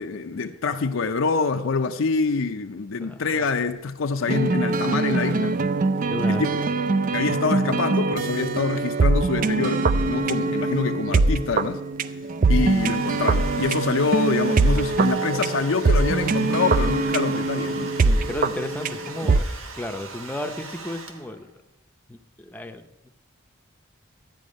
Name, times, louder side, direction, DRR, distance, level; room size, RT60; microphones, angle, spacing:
voice 1, 0.0-5.6 6.3-6.5 7.1-11.8 12.5-18.0, left 4 dB, 70° left, 0.6 m, -25 dB
voice 2, 3.0-3.4 6.1-6.6 12.6-12.7 18.0-21.5 22.1-23.1, left 1 dB, 10° left, 0.7 m, -34 dB
sound 1, 4.3-19.4, right 3 dB, 40° right, 0.4 m, -23 dB
Domestic sounds home sounds, 12.3-21.5, right 4 dB, 70° right, 1.2 m, -40 dB
13.0 x 9.3 x 5.2 m
head